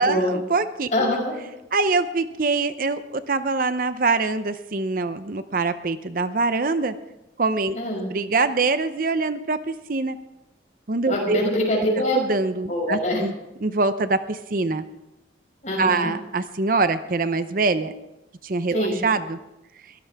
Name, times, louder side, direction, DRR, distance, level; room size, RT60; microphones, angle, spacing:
voice 1, 0.0-1.2 1.7-6.9 7.4-7.8 8.1-10.2 10.9-11.4 12.1-13.3 13.6-14.8 15.8-17.9 18.4-19.4, right 3 dB, 50° right, 11 dB, 0.7 m, -24 dB
voice 2, 0.9-1.3 7.7-8.1 11.1-12.2 12.7-13.2 15.6-16.1 18.7-19.0, left 1 dB, 40° left, -1 dB, 6.3 m, -24 dB
22.0 x 16.0 x 3.5 m, 0.96 s
head